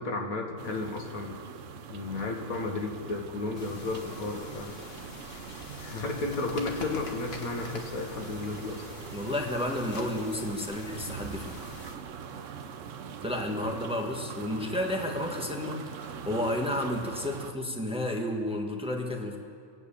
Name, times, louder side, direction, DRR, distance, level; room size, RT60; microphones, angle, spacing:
voice 1, 0.0-1.4 1.9-4.7 5.8-8.9, left 3 dB, 80° left, 2 dB, 2.0 m, -33 dB
sound 1, 0.6-17.5, right 7 dB, 65° right, 1.1 m, -42 dB
sound 2, 3.6-11.9, left 2 dB, 45° left, 1.6 m, -45 dB
voice 2, 9.1-11.6 13.2-19.4, left 1 dB, 5° right, 1 dB, 1.4 m, -32 dB
22.0 x 7.5 x 8.6 m, 2.2 s
omnidirectional pair, 1.5 m